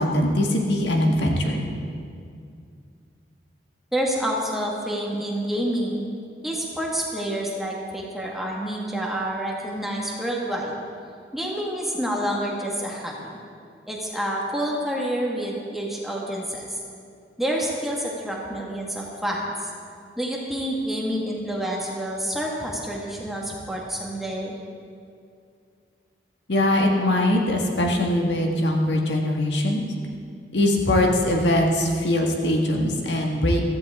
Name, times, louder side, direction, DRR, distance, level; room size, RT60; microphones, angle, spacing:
voice 1, 0.0-1.7 26.5-29.8 30.5-33.6, left 1 dB, 85° left, 0 dB, 1.8 m, -21 dB
voice 2, 3.9-6.1 6.4-10.8 11.3-13.4 13.9-16.8 17.4-19.7 20.2-24.6, equal, ahead, -3 dB, 1.8 m, -28 dB
15.5 x 14.5 x 3.7 m, 2.3 s
head